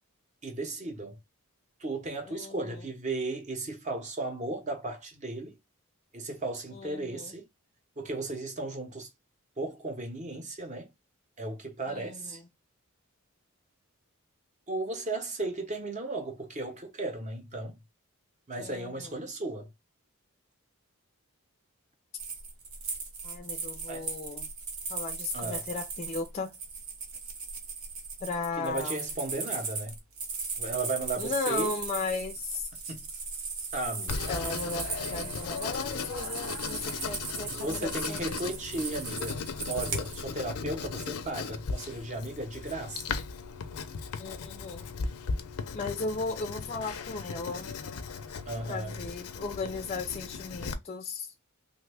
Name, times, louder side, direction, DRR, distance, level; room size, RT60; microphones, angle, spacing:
voice 1, 0.4-1.2 1.8-5.6 6.1-7.5 8.0-9.1 9.6-10.9 11.4-12.4 14.7-17.8 18.5-19.7 23.9-24.1 25.3-25.6 28.6-29.9 30.6-31.7 32.9-33.0 33.7-34.3 37.4-39.4 39.7-43.1 48.5-49.0, right 2 dB, 35° right, 0.7 m, -35 dB
voice 2, 2.3-2.7 6.7-7.3 11.9-12.4 18.6-19.1 23.2-24.5 24.9-26.5 28.2-29.0 31.2-32.7 34.3-38.4 44.2-44.9 45.7-47.7 48.6-51.3, left 3 dB, 30° left, 0.4 m, -36 dB
sound 1, 22.2-40.2, right 4 dB, 80° right, 0.9 m, -38 dB
Writing, 34.1-50.7, left 5 dB, 85° left, 0.5 m, -37 dB
3.1 x 2.2 x 3.3 m
head